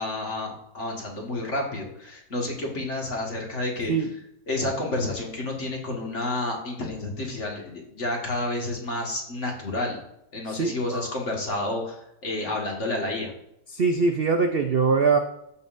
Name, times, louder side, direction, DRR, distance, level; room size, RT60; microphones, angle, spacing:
voice 1, 0.0-3.9 4.5-10.0 10.3-13.3, left 2 dB, 45° left, -1 dB, 2.0 m, -30 dB
voice 2, 10.5-11.1 13.7-15.2, right 4 dB, 60° right, 5 dB, 0.6 m, -23 dB
14.5 x 5.5 x 2.6 m, 0.80 s
omnidirectional pair, 1.8 m